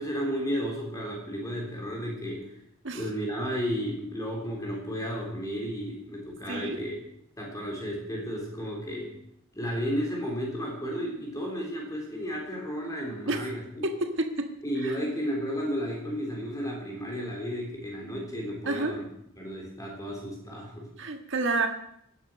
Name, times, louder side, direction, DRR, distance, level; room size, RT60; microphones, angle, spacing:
voice 1, 0.0-2.5 2.9-7.0 7.4-9.2 9.5-13.9 14.6-19.1 19.4-20.9, equal, 15° left, -1 dB, 3.7 m, -33 dB
voice 2, 13.8-14.3 14.8-14.9 18.6-18.9 21.0-21.7, right 2 dB, 55° right, 5 dB, 1.6 m, -29 dB
17.5 x 9.9 x 6.4 m, 0.74 s
head